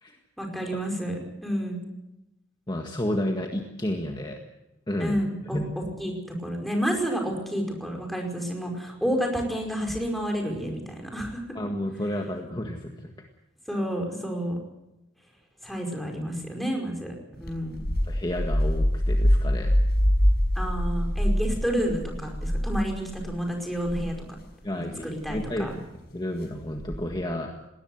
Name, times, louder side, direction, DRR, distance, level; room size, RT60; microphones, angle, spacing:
voice 1, 0.4-1.8 5.0-5.6 6.0-6.1 6.4-11.4 13.7-14.6 15.6-17.1 17.4-17.8 20.5-24.1 24.8-25.7, equal, ahead, 2 dB, 5.1 m, -30 dB
voice 2, 2.7-4.4 4.9-5.2 5.5-5.7 11.6-13.3 18.0-19.8 24.6-27.5, left 1 dB, 25° left, 2 dB, 1.8 m, -31 dB
sound 1, 17.4-23.3 23.7-24.1 25.2-25.5 26.7-27.1, equal, 55° left, 5.9 m, -24 dB
20.0 x 19.0 x 8.0 m, 0.97 s
head